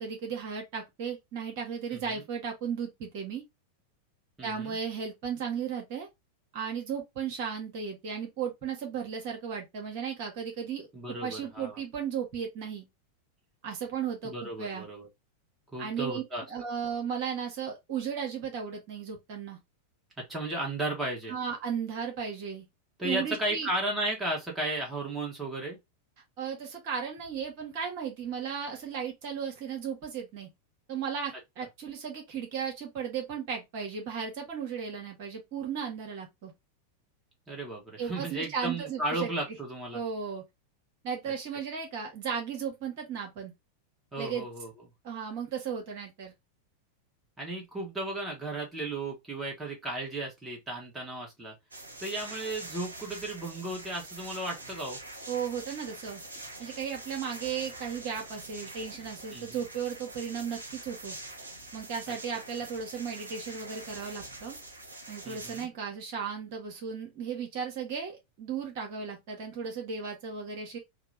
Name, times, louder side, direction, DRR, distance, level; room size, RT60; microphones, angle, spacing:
voice 1, 0.0-3.4 4.4-6.1 6.5-12.9 13.6-14.9 15.8-19.6 21.3-22.6 23.0-23.7 26.4-30.5 30.9-36.5 38.0-39.3 39.9-40.4 41.0-43.5 44.2-44.5 45.0-46.3 55.3-61.2 61.7-64.6 65.1-70.8, right 7 dB, 50° right, 1.4 m, -35 dB
voice 2, 1.9-2.2 4.4-4.8 10.9-11.8 14.2-15.1 15.7-16.4 20.3-21.3 23.0-25.8 37.5-40.0 44.1-44.7 47.4-51.5 52.0-55.0 59.3-59.6 62.1-62.2 65.2-65.7, right 2 dB, 10° right, 1.4 m, -34 dB
sound 1, 51.7-65.7, right 2 dB, 75° right, 0.9 m, -45 dB
3.7 x 2.3 x 3.3 m
figure-of-eight pair, 90°, 0 cm